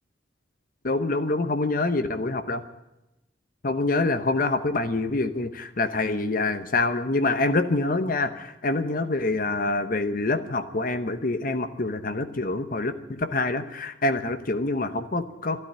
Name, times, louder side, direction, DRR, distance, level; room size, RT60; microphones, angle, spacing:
voice 1, 0.8-2.6 3.6-15.6, left 2 dB, 45° left, 10 dB, 0.9 m, -26 dB
13.5 x 12.0 x 8.8 m, 0.94 s
head